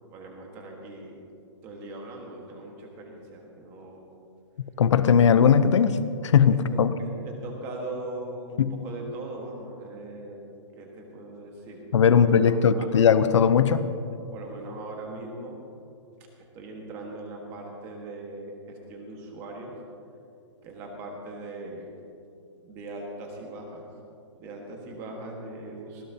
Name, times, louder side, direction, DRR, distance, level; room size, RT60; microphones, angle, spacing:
voice 1, 0.1-1.3 1.6-4.0 6.7-10.4 10.7-12.9 14.3-15.6 16.5-19.7 20.6-21.9 22.6-23.9 24.4-26.0, right 2 dB, 15° right, 1 dB, 1.5 m, -40 dB
voice 2, 4.8-6.0 6.2-6.9 8.6-8.8 11.9-13.9, left 7 dB, 75° left, 12 dB, 0.7 m, -19 dB
19.5 x 16.5 x 2.8 m, 2.7 s
hypercardioid pair, 180°, 15 cm